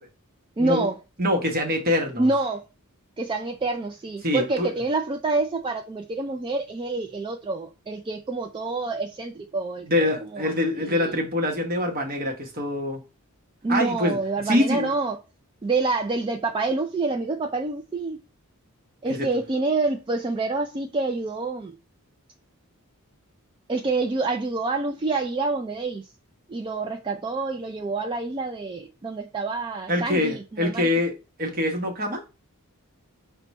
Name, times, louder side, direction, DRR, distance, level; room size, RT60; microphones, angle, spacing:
voice 1, 0.6-1.0 2.2-2.6 3.2-10.5 10.8-11.1 13.6-15.2 15.6-18.2 19.0-21.7 23.7-26.1 26.5-30.9, right 3 dB, 20° right, 0.3 m, -27 dB
voice 2, 1.2-2.3 4.2-4.7 9.8-13.0 13.7-14.2 14.5-14.9 19.1-19.3 29.9-31.1 31.4-32.2, left 1 dB, 45° right, 1.1 m, -24 dB
5.7 x 2.2 x 4.0 m
head